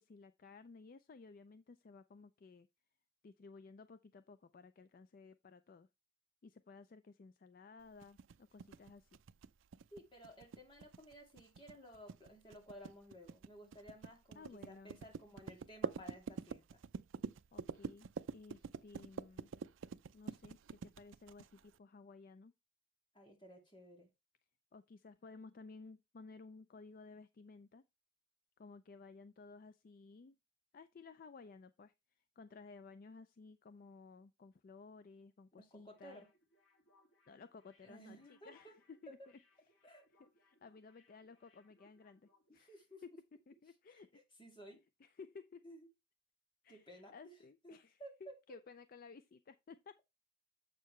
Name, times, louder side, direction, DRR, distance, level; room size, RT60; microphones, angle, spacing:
voice 1, 0.0-2.7 3.2-5.9 6.4-9.2 14.3-15.0 17.5-19.5 20.1-22.5 24.7-27.8 28.6-30.4 30.7-36.2 37.3-39.2 39.7-39.9 40.2-43.1 43.5-44.1 45.0-45.6 46.6-50.0, left 4 dB, 45° left, 0.4 m, -56 dB
sound 1, 8.0-21.7, right 5 dB, 80° right, 0.4 m, -46 dB
voice 2, 9.9-16.8 23.1-24.1 35.6-36.3 37.8-38.7 39.1-39.3 39.8-40.1 42.6-43.0 43.9-44.0 44.4-44.8 45.6-45.9 46.7-47.4 47.6-48.4, equal, 25° left, 2.4 m, -56 dB
sound 2, 35.9-42.5 42.8-42.9, left 2 dB, 85° left, 2.3 m, -73 dB
7.5 x 6.6 x 3.1 m
head